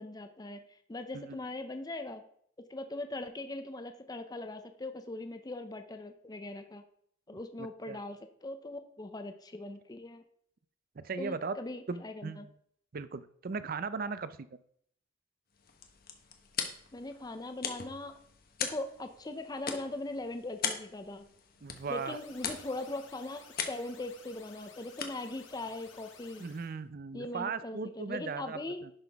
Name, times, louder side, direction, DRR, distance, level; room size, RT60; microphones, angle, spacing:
voice 1, 0.0-2.2 2.7-6.8 7.3-10.2 11.2-12.5 16.9-18.1 18.6-21.3 21.9-23.4 23.7-26.4 27.1-28.8, left 2 dB, 20° left, 8 dB, 0.6 m, -40 dB
voice 2, 7.6-8.0 11.0-11.6 11.9-12.5 12.9-14.4 21.6-22.2 26.4-28.9, right 4 dB, 50° right, 14 dB, 0.5 m, -38 dB
sound 1, 15.5-26.7, left 7 dB, 50° left, 1.1 m, -42 dB
sound 2, 21.6-26.7, left 5 dB, 75° left, 1.3 m, -56 dB
10.5 x 5.9 x 3.5 m, 0.66 s
head